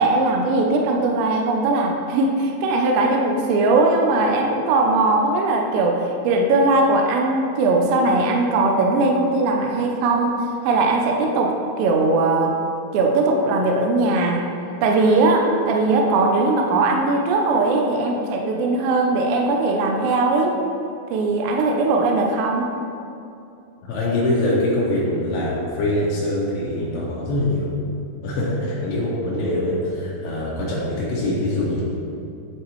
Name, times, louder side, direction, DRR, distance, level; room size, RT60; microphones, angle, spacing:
voice 1, 0.0-10.4 10.6-12.5 12.9-14.5 14.8-20.6 21.1-22.7, right 2 dB, 80° right, 1 dB, 2.7 m, -19 dB
voice 2, 23.8-27.7 28.2-31.8, left 1 dB, 75° left, -6 dB, 2.8 m, -23 dB
11.0 x 4.5 x 3.0 m, 2.6 s
omnidirectional pair, 5.1 m